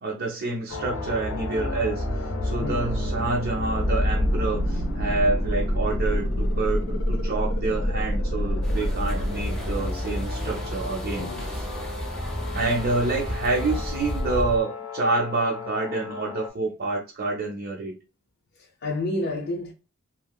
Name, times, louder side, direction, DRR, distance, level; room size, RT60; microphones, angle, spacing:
voice 1, 0.0-11.6 12.5-18.0, right 3 dB, 50° right, 0.6 m, -28 dB
sound 1, 0.7-16.5, left 1 dB, 90° left, 0.8 m, -28 dB
sound 2, 8.6-14.6, equal, 5° left, 0.6 m, -32 dB
voice 2, 18.5-19.7, left 2 dB, 55° left, 0.5 m, -30 dB
3.0 x 2.7 x 2.2 m
head